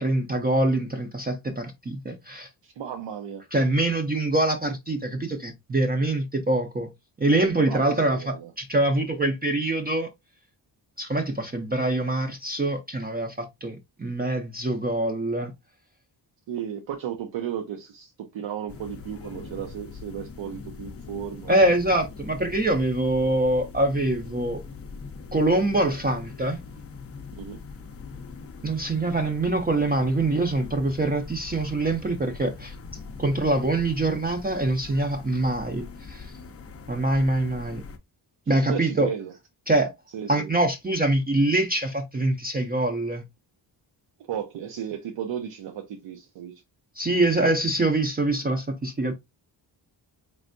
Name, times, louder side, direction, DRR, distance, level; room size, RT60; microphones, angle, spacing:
voice 1, 0.0-2.5 3.5-6.9 7.2-10.1 11.0-15.5 21.5-24.6 25.3-26.6 28.6-32.8 33.2-36.3 36.9-37.8 38.5-39.1 39.7-39.9 40.3-43.2 47.0-49.1, right 2 dB, 20° right, 0.4 m, -24 dB
voice 2, 2.6-3.4 7.6-8.5 16.5-21.5 27.4-27.6 38.5-39.3 40.1-40.5 44.3-46.5, right 9 dB, 85° right, 0.7 m, -34 dB
sound 1, 18.7-38.0, left 4 dB, 35° left, 0.5 m, -42 dB
4.3 x 3.3 x 2.5 m
wide cardioid pair, 165°, 43 cm